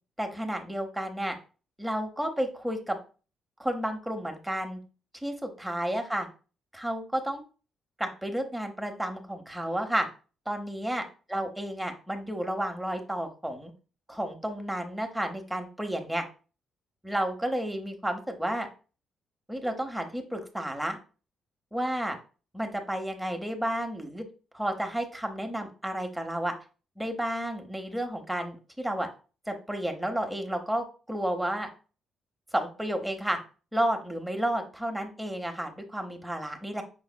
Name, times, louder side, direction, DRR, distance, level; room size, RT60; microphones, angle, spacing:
voice 1, 0.2-1.4 1.8-3.0 3.6-4.8 5.2-6.3 6.7-7.4 8.0-10.1 10.5-11.0 11.3-13.7 14.1-16.2 17.0-18.7 19.5-21.0 21.7-22.2 22.5-24.2 24.5-26.5 27.0-29.1 29.5-31.7 32.5-33.4 33.7-36.8, right 1 dB, 5° right, 4 dB, 0.8 m, -31 dB
5.9 x 3.9 x 2.2 m, 0.36 s
cardioid pair, 90°, 0 cm